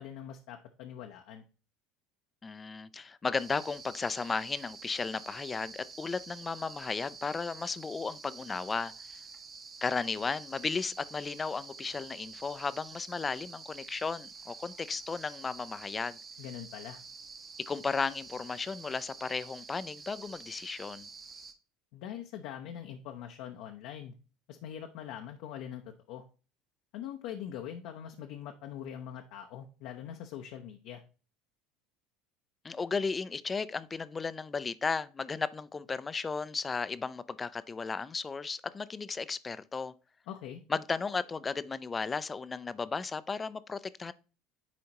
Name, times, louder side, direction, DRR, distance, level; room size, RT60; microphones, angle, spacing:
voice 1, 0.0-1.4 16.4-17.0 21.9-24.1 24.5-25.8 26.1-26.2 26.9-31.0 40.3-40.6, left 10 dB, 70° left, 0.7 m, -43 dB
voice 2, 2.4-8.9 9.8-16.2 17.7-21.1 32.6-39.9 40.7-44.1, left 4 dB, 20° left, 0.4 m, -35 dB
sound 1, 3.3-21.5, right 5 dB, 30° right, 1.0 m, -48 dB
10.0 x 4.2 x 2.9 m
supercardioid pair, 105°, 0 cm